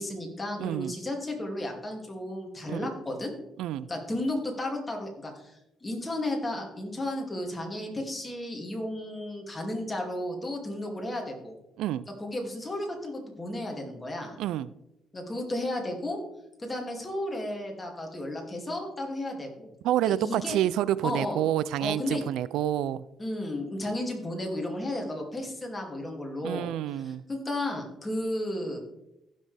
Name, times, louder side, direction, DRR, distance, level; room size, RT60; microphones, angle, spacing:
voice 1, 0.0-3.3 3.9-5.5 5.8-11.5 12.2-14.3 15.1-16.2 16.6-19.7 20.0-20.6 21.0-21.4 21.8-22.2 23.2-26.7 26.9-28.8, left 1 dB, 20° left, 2.5 m, -33 dB
voice 2, 0.6-0.9 2.7-2.8 3.6-3.9 11.8-12.1 14.4-14.7 19.8-23.0 26.4-27.2, right 12 dB, 90° right, 0.3 m, -28 dB
15.5 x 6.4 x 3.4 m
cardioid pair, 90°, 0 cm